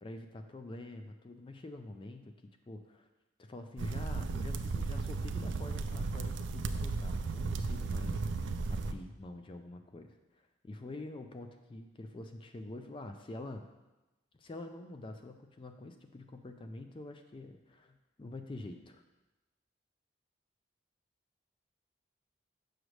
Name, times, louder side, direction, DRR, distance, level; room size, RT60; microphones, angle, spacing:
voice 1, 0.0-2.3 2.7-3.1 3.4-13.7 14.4-19.0, left 2 dB, 25° left, 6 dB, 0.3 m, -46 dB
sound 1, 3.8-8.9, right 3 dB, 75° right, 0.4 m, -35 dB
6.4 x 6.1 x 3.2 m, 1.1 s
head